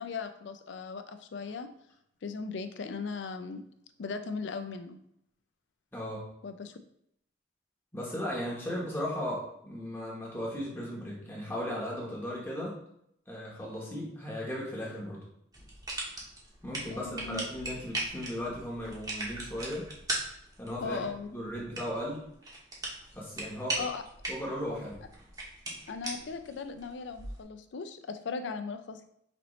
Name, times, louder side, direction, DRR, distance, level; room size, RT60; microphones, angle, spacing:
voice 1, 0.0-1.7 2.2-3.6 4.0-5.0 6.4-6.8 16.9-17.4 20.8-21.3 23.8-24.0 25.9-29.1, left 4 dB, 80° left, 8 dB, 0.4 m, -38 dB
voice 2, 5.9-6.3 7.9-12.7 13.3-15.2 16.6-19.9 20.6-21.0 21.3-22.2 23.1-23.8 24.3-25.0, equal, 10° left, -4 dB, 1.0 m, -36 dB
sound 1, 15.5-27.4, right 2 dB, 20° right, 0.9 m, -39 dB
5.1 x 3.0 x 3.0 m, 0.73 s
head